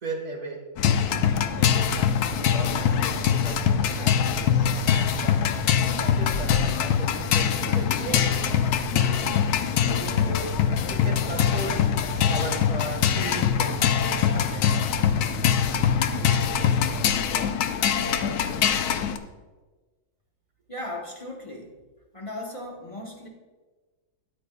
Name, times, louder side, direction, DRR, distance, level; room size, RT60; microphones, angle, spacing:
voice 1, 0.0-1.1 1.5-1.8 2.4-5.4 5.9-8.3 8.9-9.5 9.8-11.9 12.3-13.9 14.2-14.7 17.0-17.6 18.1-19.1, right 1 dB, 20° right, 0 dB, 1.4 m, -37 dB
sound 1, 0.8-19.2, left 8 dB, 80° left, 0.8 m, -23 dB
voice 2, 20.7-21.7 22.1-23.3, left 1 dB, 45° left, -1 dB, 0.4 m, -37 dB
13.5 x 8.8 x 2.3 m, 1.3 s
omnidirectional pair, 2.2 m